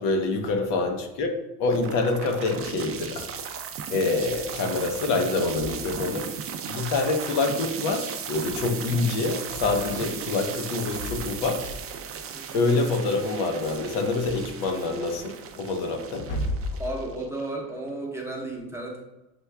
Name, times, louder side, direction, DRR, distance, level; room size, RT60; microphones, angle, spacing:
voice 1, 0.0-1.3 1.6-3.5 3.9-6.3 6.7-11.7 12.5-16.6, left 3 dB, 80° left, 3 dB, 0.9 m, -26 dB
voice 2, 0.6-0.9 12.3-12.6 16.8-19.0, right 2 dB, 5° right, -2 dB, 0.8 m, -34 dB
sound 1, 1.7-17.7, right 7 dB, 35° right, 0.4 m, -36 dB
6.0 x 2.2 x 3.4 m, 0.95 s
cardioid pair, 110°, 42 cm